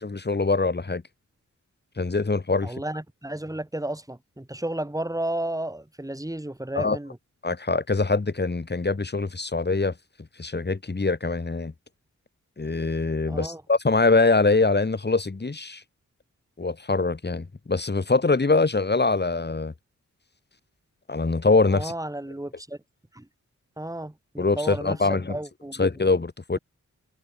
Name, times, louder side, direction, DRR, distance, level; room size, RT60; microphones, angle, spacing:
voice 1, 0.0-1.0 2.0-2.7 6.7-7.0 7.4-9.9 10.4-11.7 12.6-15.8 16.6-19.7 21.1-21.9 24.4-25.4 25.8-26.6, left 3 dB, 35° left, 2.7 m, -23 dB
voice 2, 2.6-7.2 13.3-13.6 21.7-22.8 23.1-23.3 23.8-25.8, right 1 dB, 10° right, 6.4 m, -33 dB
cardioid pair, 70°, 30 cm